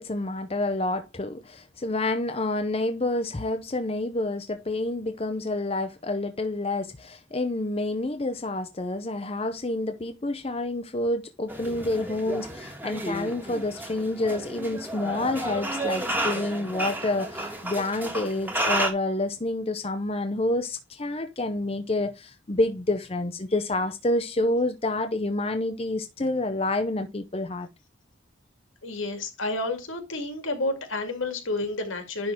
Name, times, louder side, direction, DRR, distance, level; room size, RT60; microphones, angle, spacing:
voice 1, 0.0-27.7, left 2 dB, 30° left, 0.6 m, -28 dB
sound 1, 11.5-18.9, right 1 dB, 10° right, 1.4 m, -32 dB
voice 2, 28.8-32.3, left 2 dB, 80° left, 2.0 m, -30 dB
10.5 x 3.6 x 4.4 m
head